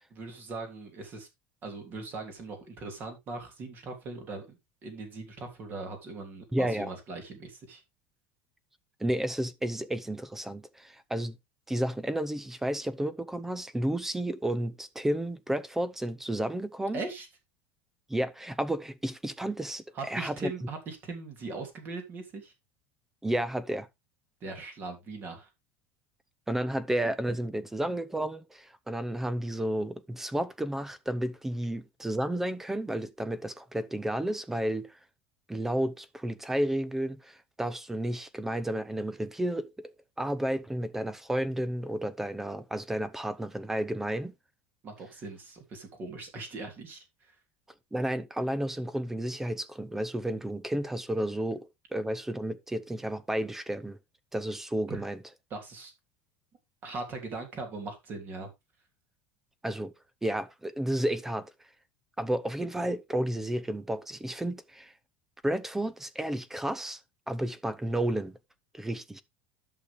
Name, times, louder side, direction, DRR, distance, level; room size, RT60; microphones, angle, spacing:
voice 1, 0.1-1.3 1.6-7.8 16.9-17.3 19.9-22.5 24.4-25.5 44.8-47.3 54.9-55.0 55.5-55.9 56.8-58.5, right 3 dB, 35° right, 3.1 m, -40 dB
voice 2, 6.5-6.9 9.0-11.4 11.7-17.0 18.1-20.5 23.2-23.9 26.5-35.0 35.5-44.3 47.9-54.0 54.3-55.2 59.6-59.9 60.2-61.5 62.2-64.9 65.4-67.0 67.3-68.4 68.7-69.2, right 1 dB, 5° right, 0.6 m, -32 dB
11.0 x 6.7 x 3.4 m
supercardioid pair, 150°, 6 cm